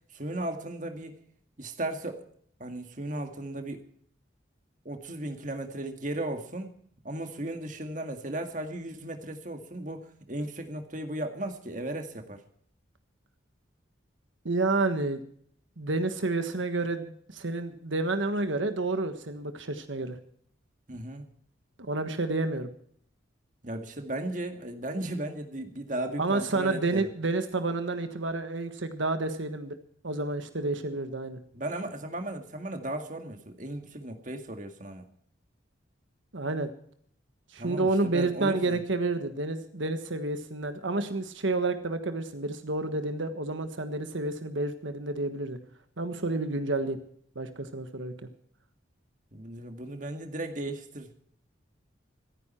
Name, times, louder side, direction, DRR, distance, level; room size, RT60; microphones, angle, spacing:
voice 1, 0.1-1.2 1.6-2.2 2.6-3.8 4.9-6.8 7.0-12.4 20.9-21.2 23.6-27.1 31.5-35.1 37.6-38.8 49.3-51.1, right 1 dB, 40° right, 6 dB, 2.0 m, -36 dB
voice 2, 14.4-15.2 15.8-20.2 21.8-22.7 26.2-29.7 30.0-31.4 36.3-36.7 37.5-45.6 46.0-47.0 47.3-48.1, right 2 dB, 80° right, 8 dB, 1.5 m, -30 dB
26.0 x 9.8 x 4.4 m, 0.62 s
head